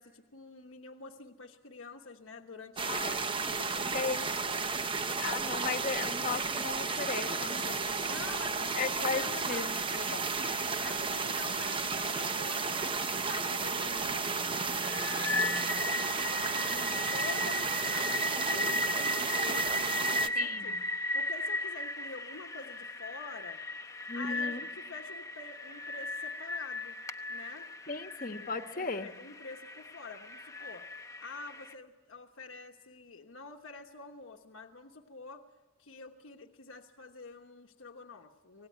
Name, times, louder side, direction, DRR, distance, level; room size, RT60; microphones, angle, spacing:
voice 1, 0.0-4.7 8.1-9.8 10.8-20.8 21.1-23.6 23.9-27.0 27.3-27.7 28.3-30.9 31.2-35.5 35.8-38.7, left 4 dB, 85° left, 3 dB, 1.2 m, -47 dB
sound 1, 2.8-20.3, right 4 dB, 25° right, 0.8 m, -33 dB
voice 2, 2.9-3.5 3.9-4.3 5.2-8.3 8.8-10.5 13.9-14.1 16.7-17.0 20.3-20.8 24.1-24.6 27.9-29.1, left 4 dB, 45° left, 8 dB, 1.2 m, -37 dB
sound 2, 12.2-16.0, left 2 dB, 10° right, 2.5 m, -52 dB
sound 3, 14.8-31.7, left 2 dB, 15° left, 0.8 m, -36 dB
25.5 x 18.5 x 9.3 m, 1.2 s
head